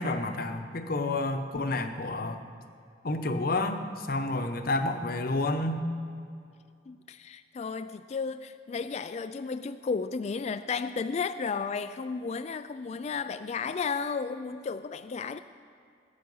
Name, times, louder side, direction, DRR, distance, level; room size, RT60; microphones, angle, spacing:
voice 1, 0.0-2.4 3.0-5.8, left 2 dB, 55° left, 8 dB, 0.9 m, -30 dB
voice 2, 6.9-15.4, left 5 dB, 35° left, 11 dB, 0.3 m, -33 dB
18.5 x 8.7 x 5.5 m, 2.4 s
head